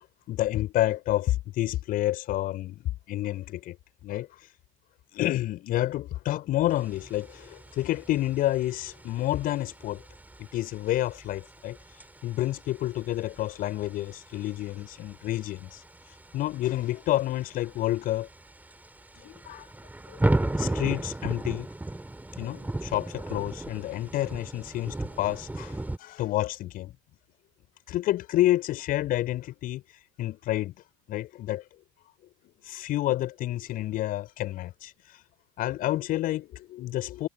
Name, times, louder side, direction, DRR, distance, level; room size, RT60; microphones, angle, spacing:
voice 1, 0.3-3.8 4.0-4.5 5.1-10.0 10.4-18.3 19.2-19.7 20.1-21.7 22.4-26.9 27.9-30.7 31.1-31.7 32.6-35.2 35.6-37.3, left 15 dB, 50° left, 5.6 m, -29 dB
sound 1, 6.7-26.0, right 2 dB, 10° right, 3.9 m, -36 dB
figure-of-eight pair, 65°, 19 cm